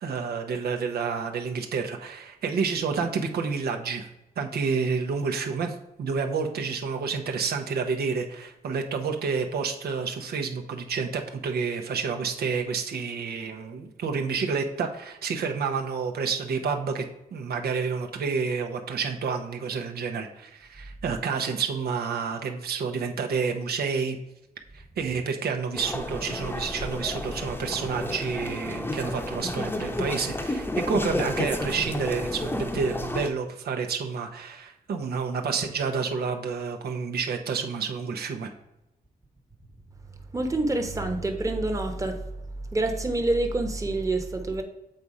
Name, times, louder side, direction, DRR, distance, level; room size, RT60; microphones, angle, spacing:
voice 1, 0.0-4.1 4.4-17.0 17.3-24.2 24.7-38.5, right 5 dB, 90° right, 4 dB, 0.9 m, -29 dB
sound 1, 25.7-33.3, left 1 dB, 15° left, 0.8 m, -31 dB
voice 2, 40.3-42.2 42.7-44.6, right 2 dB, 20° right, 4 dB, 1.0 m, -27 dB
7.6 x 4.1 x 4.8 m, 0.89 s
wide cardioid pair, 120°, 16 cm